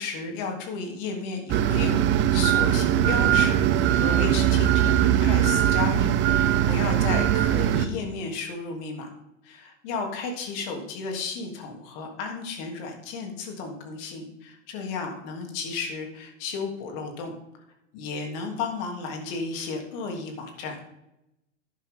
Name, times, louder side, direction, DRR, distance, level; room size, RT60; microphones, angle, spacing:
voice 1, 0.0-9.1 9.4-17.3 17.9-20.8, left 4 dB, 45° left, 3 dB, 3.1 m, -33 dB
sound 1, 1.5-7.9, right 11 dB, 30° right, 0.7 m, -21 dB
12.0 x 10.5 x 3.8 m, 0.86 s
hypercardioid pair, 105°, 39 cm